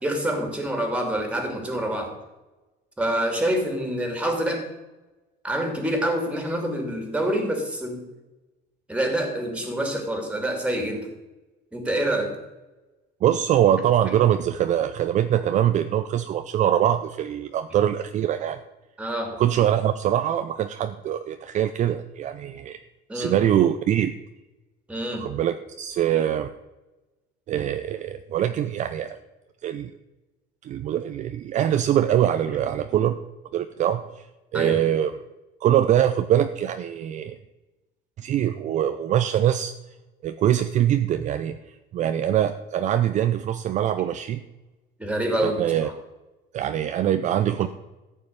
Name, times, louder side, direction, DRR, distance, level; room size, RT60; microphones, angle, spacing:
voice 1, 0.0-2.1 3.0-4.7 5.4-8.0 8.9-11.1 11.7-12.3 19.0-19.4 23.1-23.3 24.9-25.3 34.5-34.8 45.0-45.9, right 1 dB, 5° right, 4 dB, 2.8 m, -26 dB
voice 2, 13.2-18.6 19.4-22.8 23.1-24.2 25.1-26.5 27.5-29.2 29.6-29.9 30.6-33.2 33.5-34.3 34.5-35.2 35.6-37.4 38.2-39.7 40.2-41.6 41.9-44.4 45.4-45.9 46.5-47.7, right 10 dB, 40° right, 10 dB, 0.6 m, -23 dB
14.0 x 5.6 x 9.5 m, 1.1 s
cardioid pair, 155°, 18 cm